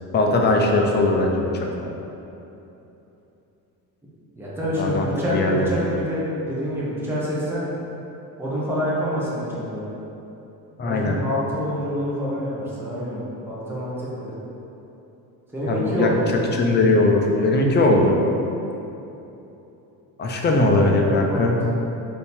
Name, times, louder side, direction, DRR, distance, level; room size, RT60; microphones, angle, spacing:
voice 1, 0.1-1.5 4.8-5.7 10.8-11.2 15.7-16.1 16.6-18.1 20.2-21.6, left 2 dB, 30° left, 1 dB, 0.5 m, -19 dB
voice 2, 4.3-7.6 8.4-9.9 10.8-14.3 15.5-16.5 21.1-21.7, equal, 5° right, -8 dB, 0.8 m, -27 dB
3.4 x 2.7 x 4.4 m, 3.0 s
cardioid pair, 110°, 38 cm